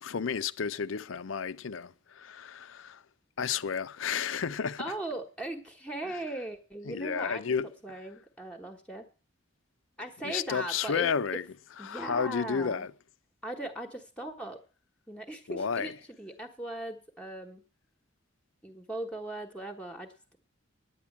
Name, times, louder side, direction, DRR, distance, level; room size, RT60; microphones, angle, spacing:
voice 1, 0.0-3.0 3.4-4.8 6.9-7.7 10.2-11.5 11.8-12.9 15.5-15.9, left 6 dB, 80° left, 0.5 m, -32 dB
voice 2, 4.8-7.4 7.8-9.1 10.0-11.1 11.8-12.9 13.4-14.6 15.1-15.9 16.2-17.6 18.6-20.4, right 1 dB, 5° left, 1.1 m, -39 dB
10.0 x 9.4 x 7.2 m
head